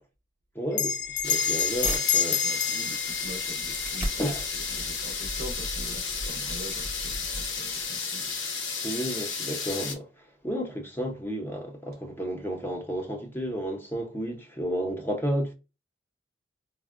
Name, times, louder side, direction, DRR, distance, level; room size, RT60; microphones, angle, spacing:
voice 1, 0.5-2.7 4.2-4.5 8.8-10.1 10.4-15.5, equal, 10° left, 0.5 m, -32 dB
Bell, 0.7-5.6, left 8 dB, 65° left, 0.3 m, -29 dB
sound 1, 1.1-2.0 2.6-7.8, right 1 dB, 10° right, 0.8 m, -38 dB
sound 2, 1.2-9.9, left 5 dB, 85° left, 0.8 m, -33 dB
voice 2, 2.4-4.3 4.5-8.3, right 1 dB, 50° right, 0.5 m, -44 dB
4.3 x 2.0 x 2.3 m
head